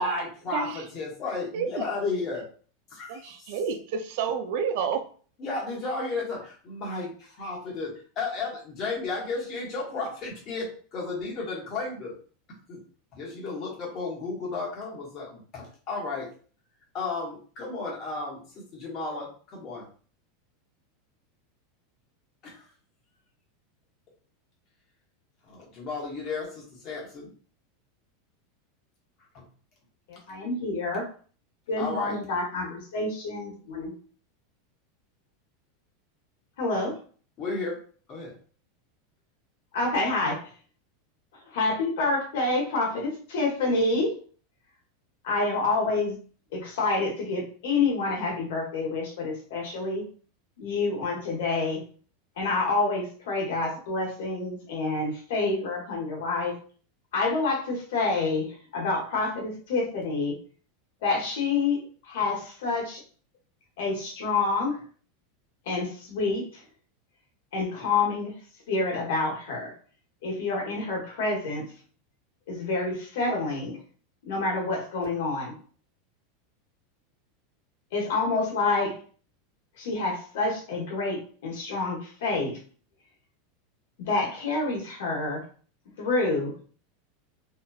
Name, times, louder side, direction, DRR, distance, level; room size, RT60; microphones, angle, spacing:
voice 1, 0.0-2.5 2.9-3.6 5.4-12.2 12.7-12.8 13.1-16.3 16.9-18.4 18.7-19.9 22.4-22.7 25.4-27.3 29.3-29.5 31.8-32.1 37.4-37.8 38.1-38.3, left 3 dB, 35° left, -3 dB, 1.1 m, -33 dB
voice 2, 3.1-5.1, right 6 dB, 65° right, 7 dB, 0.4 m, -29 dB
voice 3, 30.1-31.0 31.7-33.9 36.6-37.0 39.7-40.5 41.5-44.1 45.2-46.2 46.5-50.0 50.6-51.8 52.4-56.6 57.1-60.4 61.0-63.0 63.8-64.8 65.6-66.6 67.5-68.3 68.7-69.7 70.2-71.7 72.5-73.8 74.3-75.5 77.9-79.0 79.8-82.6 84.0-85.4 86.0-86.5, left 3 dB, 75° left, -1 dB, 1.2 m, -28 dB
2.9 x 2.3 x 2.3 m, 0.43 s
supercardioid pair, 140°, 0 cm